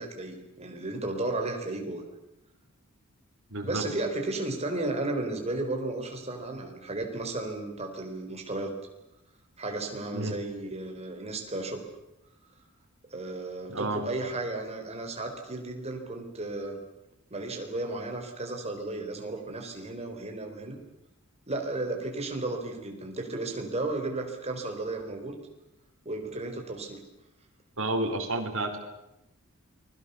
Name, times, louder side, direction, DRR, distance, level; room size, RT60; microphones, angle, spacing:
voice 1, 0.0-2.0 3.6-8.8 9.6-11.8 13.1-16.8 17.3-20.8 21.5-25.4 26.0-27.0, right 2 dB, 30° right, 3 dB, 4.5 m, -34 dB
voice 2, 3.5-3.8 10.1-10.4 13.7-14.0 27.8-28.8, right 2 dB, 65° right, 4 dB, 4.4 m, -30 dB
29.5 x 21.5 x 7.1 m, 0.91 s
head